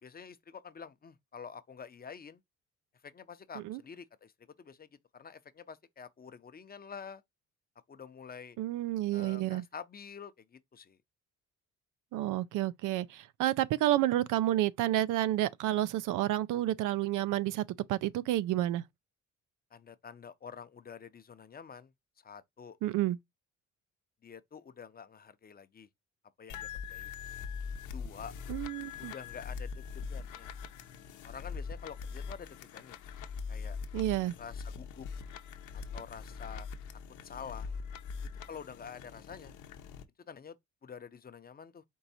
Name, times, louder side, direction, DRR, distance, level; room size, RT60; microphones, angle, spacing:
voice 1, 0.0-2.4 3.0-4.3 4.6-4.9 5.1-7.2 7.9-8.6 9.1-11.0 19.7-21.9 22.2-22.8 24.2-25.9 26.4-27.1 27.8-28.3 29.0-30.5 31.2-33.0 33.5-33.8 34.4-35.1 35.7-36.7 37.2-37.7 38.5-39.5 40.3-40.6 40.8-41.8, left 6 dB, 30° left, 0.6 m, -48 dB
voice 2, 8.6-9.6 12.1-17.6 17.9-18.8 22.8-23.2 28.5-29.1 33.9-34.3, right 14 dB, 85° right, 0.5 m, -30 dB
sound 1, 26.5-40.0, left 5 dB, 85° left, 0.8 m, -42 dB
4.6 x 2.6 x 4.1 m
cardioid pair, 90°, 30 cm